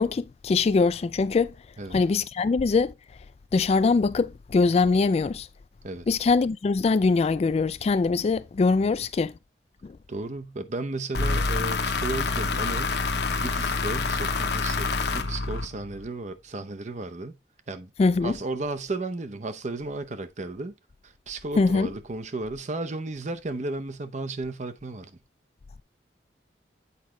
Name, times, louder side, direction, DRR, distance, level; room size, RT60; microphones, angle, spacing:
voice 1, 0.0-1.5 1.9-2.9 3.5-5.5 6.1-9.3 9.8-10.0 18.0-18.4 21.6-21.9, left 4 dB, 35° left, 0.3 m, -22 dB
voice 2, 10.1-13.0 13.4-17.4 17.7-17.9 18.2-20.7 21.0-25.2, right 2 dB, 40° right, 0.7 m, -34 dB
sound 1, 11.1-16.1, left 3 dB, 65° left, 0.9 m, -27 dB
8.3 x 4.9 x 3.2 m
head